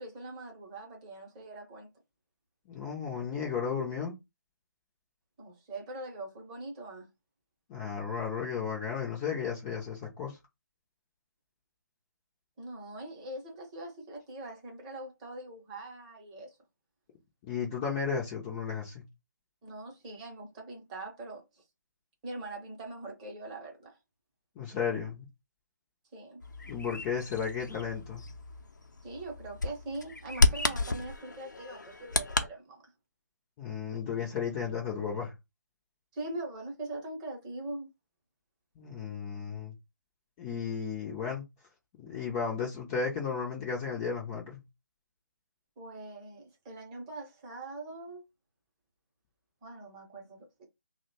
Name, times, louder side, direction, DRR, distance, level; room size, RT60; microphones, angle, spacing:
voice 1, 0.0-1.9 5.4-7.1 12.6-16.6 19.6-21.6 22.2-24.0 26.1-26.4 29.0-32.9 36.1-37.9 45.8-48.2 49.6-50.6, right 2 dB, 20° right, 0.8 m, -42 dB
voice 2, 2.7-4.1 7.7-10.4 17.4-19.0 24.6-25.3 26.7-28.3 33.6-35.3 38.8-39.8 40.4-41.4 42.0-44.6, left 6 dB, 15° left, 0.5 m, -34 dB
Bird vocalization bird call bird song, 26.4-32.5, left 3 dB, 70° left, 0.6 m, -32 dB
2.8 x 2.1 x 4.0 m
figure-of-eight pair, 150°, 10 cm